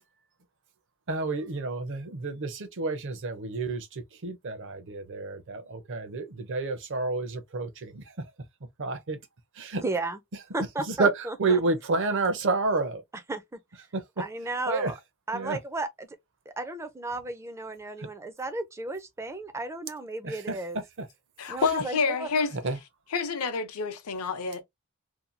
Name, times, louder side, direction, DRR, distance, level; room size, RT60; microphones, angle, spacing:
voice 1, 1.1-8.0 8.8-9.2 9.6-9.8 10.9-13.0 13.9-14.0 14.7-14.9 15.3-15.6 18.0-18.1 20.2-20.5 21.0-21.1 22.6-22.8, right 3 dB, 55° right, 0.6 m, -29 dB
voice 2, 9.8-10.2 10.5-11.6 13.3-13.6 14.2-14.9 15.3-16.2 16.5-20.8 21.5-22.3, right 2 dB, 10° right, 0.4 m, -34 dB
voice 3, 21.4-22.5 23.1-24.6, left 5 dB, 75° left, 0.6 m, -28 dB
2.7 x 2.2 x 2.5 m
head